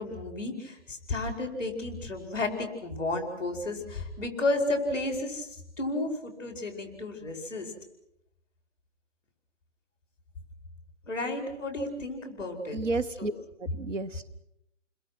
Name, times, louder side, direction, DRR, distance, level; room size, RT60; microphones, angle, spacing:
voice 1, 0.0-7.7 11.1-12.8 13.2-13.3, left 2 dB, 5° left, 4 dB, 4.7 m, -32 dB
voice 2, 12.7-13.3 13.6-14.3, right 3 dB, 75° right, 12 dB, 1.4 m, -31 dB
30.0 x 22.0 x 6.1 m, 0.81 s
hypercardioid pair, 165°, 37 cm